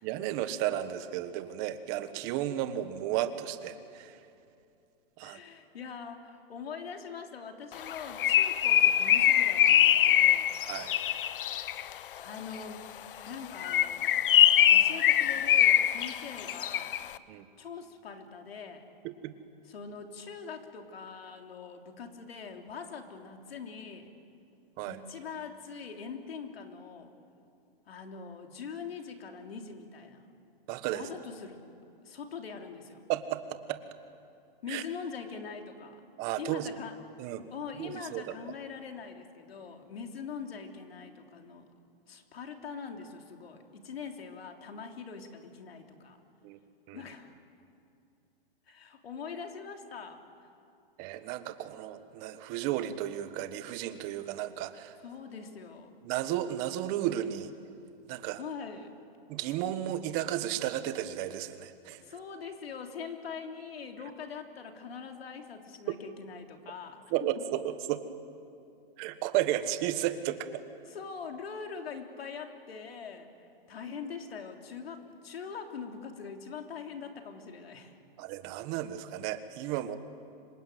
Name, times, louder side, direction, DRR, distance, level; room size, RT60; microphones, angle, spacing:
voice 1, 0.0-4.2 5.2-5.4 10.6-10.9 17.3-17.4 19.0-19.3 24.8-25.0 30.7-31.0 33.1-33.8 34.7-34.8 36.2-36.7 37.2-37.4 37.8-38.3 46.4-46.6 46.9-47.0 51.0-55.0 56.0-57.5 58.1-58.4 59.3-62.0 65.9-66.0 67.1-68.1 69.0-70.5 78.2-80.0, right 12 dB, 30° right, 11 dB, 1.4 m, -33 dB
voice 2, 5.2-10.5 12.2-12.9 13.3-14.2 14.7-17.0 17.6-18.9 19.7-24.1 24.9-27.1 27.9-30.3 30.9-31.6 32.0-33.0 34.6-36.0 36.4-37.0 37.5-41.7 42.1-46.2 46.9-47.3 48.7-50.5 55.0-55.9 57.1-57.2 58.4-58.9 62.0-67.4 70.5-78.0, left 6 dB, 80° left, 4 dB, 3.4 m, -43 dB
Bird, 7.8-11.9 13.5-17.1, left 11 dB, 65° left, 1.0 m, -23 dB
26.5 x 23.5 x 9.3 m, 2.6 s
hypercardioid pair, 155°, 30 cm